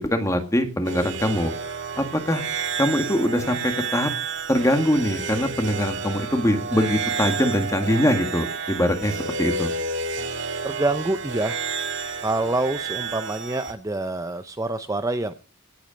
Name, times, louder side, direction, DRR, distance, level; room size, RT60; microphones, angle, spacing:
voice 1, 0.1-1.5 2.0-2.4 2.8-4.1 4.5-9.7, equal, 15° left, 7 dB, 1.8 m, -23 dB
sound 1, 0.8-13.7, right 4 dB, 55° right, 1.9 m, -30 dB
voice 2, 10.6-11.6 12.2-15.3, right 2 dB, 15° right, 9 dB, 0.5 m, -26 dB
16.5 x 8.5 x 5.1 m, 0.38 s
head